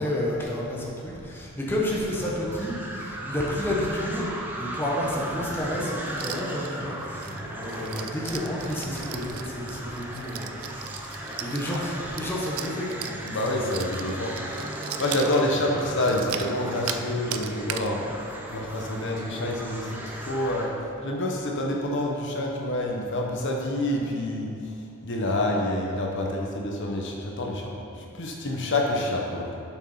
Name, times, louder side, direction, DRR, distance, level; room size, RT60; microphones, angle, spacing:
voice 1, 0.0-13.2, left 1 dB, 10° left, -4 dB, 1.1 m, -31 dB
sound 1, 2.1-20.8, right 1 dB, 10° right, 0.7 m, -36 dB
sound 2, 6.1-6.7 7.0-17.0 17.3-17.9 18.3-18.4 18.7-19.0 19.3-19.4 19.9-20.1, right 10 dB, 75° right, 0.4 m, -37 dB
voice 2, 13.3-14.6 15.0-18.0 18.5-20.7 21.0-24.5 25.0-29.6, left 1 dB, 55° left, 0 dB, 0.9 m, -27 dB
7.2 x 6.3 x 5.5 m, 2.6 s
head